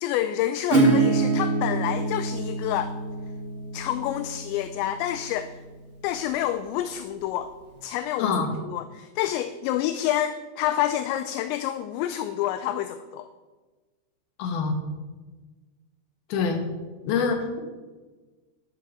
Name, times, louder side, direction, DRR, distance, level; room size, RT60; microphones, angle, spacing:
voice 1, 0.0-2.9 3.7-5.6 6.0-7.5 7.8-13.3, left 12 dB, 85° left, 10 dB, 2.7 m, -28 dB
Acoustic guitar / Strum, 0.7-6.2, right 3 dB, 45° right, 0.9 m, -26 dB
voice 2, 8.2-8.5 14.4-14.8 16.3-16.6 17.0-17.6, left 5 dB, 65° left, 3 dB, 2.9 m, -25 dB
13.0 x 6.8 x 7.4 m, 1.3 s
omnidirectional pair, 5.5 m